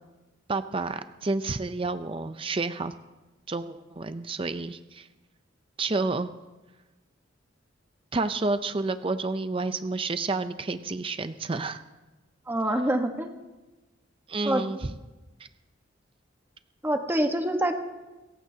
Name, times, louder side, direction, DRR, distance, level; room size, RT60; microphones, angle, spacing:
voice 1, 0.5-2.9 3.5-5.1 5.8-6.3 8.1-11.8 14.3-14.8 15.4-15.5, right 3 dB, 30° right, 10 dB, 0.5 m, -30 dB
voice 2, 12.5-13.3 14.4-14.6 16.8-17.7, right 1 dB, 10° right, 4 dB, 1.3 m, -25 dB
29.0 x 15.0 x 2.8 m, 1.1 s
head